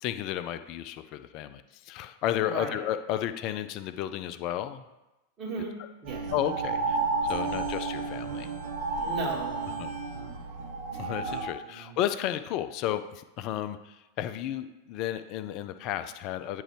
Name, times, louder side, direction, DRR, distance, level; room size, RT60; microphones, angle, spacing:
voice 1, 0.0-4.8 6.3-7.0 7.3-8.5 9.8-9.9 10.9-16.6, left 12 dB, 40° left, 11 dB, 0.4 m, -33 dB
voice 2, 2.4-2.8 5.4-5.8 6.0-6.3 6.7-6.8 7.4-7.5 9.0-10.4 11.6-12.0, right 3 dB, 30° right, -4 dB, 2.2 m, -37 dB
sound 1, 6.0-11.5, right 4 dB, 55° right, 1.0 m, -32 dB
9.8 x 3.8 x 3.3 m, 1.0 s
figure-of-eight pair, 90°, 0 cm